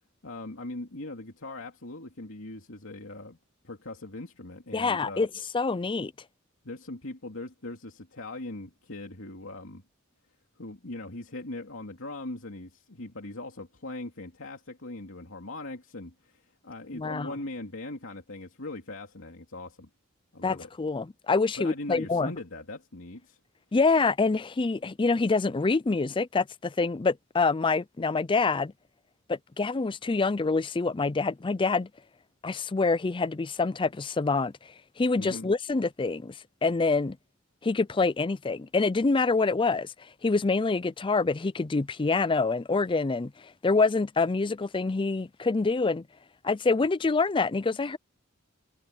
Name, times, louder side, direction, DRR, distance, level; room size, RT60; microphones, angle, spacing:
voice 1, 0.2-3.4 3.6-5.3 6.6-9.8 10.6-19.9 20.3-20.7 21.6-23.4 35.2-35.5, left 2 dB, 70° left, 2.9 m, -40 dB
voice 2, 4.7-5.3 5.5-6.1 16.9-17.3 20.4-22.3 23.7-28.7 29.3-31.9 32.4-37.2 37.6-39.9 40.2-46.0 46.4-48.0, left 3 dB, 25° left, 0.5 m, -26 dB
head